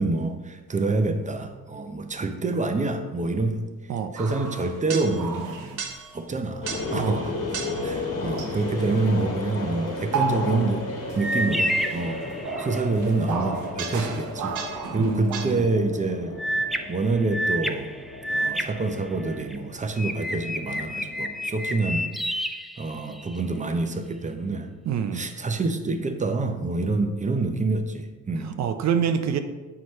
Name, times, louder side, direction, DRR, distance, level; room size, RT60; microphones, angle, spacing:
voice 1, 0.0-3.7 4.1-5.8 6.1-7.4 7.8-10.9 11.1-12.2 12.6-16.4 16.9-17.9 18.3-22.4 22.8-24.7 25.1-28.6, right 3 dB, 25° right, 6 dB, 0.7 m, -27 dB
sound 1, 4.2-6.1 6.7-7.0 7.5-7.9 8.4-9.1 9.9-10.8 11.1-15.5, right 5 dB, 85° right, 1.0 m, -33 dB
sound 2, 6.6-21.8, left 2 dB, 55° left, 1.6 m, -35 dB
voice 2, 6.9-7.2 15.0-15.7 24.9-25.3 28.4-29.4, right 7 dB, 60° right, 8 dB, 0.6 m, -26 dB
sound 3, 11.2-12.9 16.4-19.6 20.0-23.4, equal, ahead, 0.4 m, -30 dB
7.7 x 5.9 x 3.2 m, 1.3 s
cardioid pair, 90°, 30 cm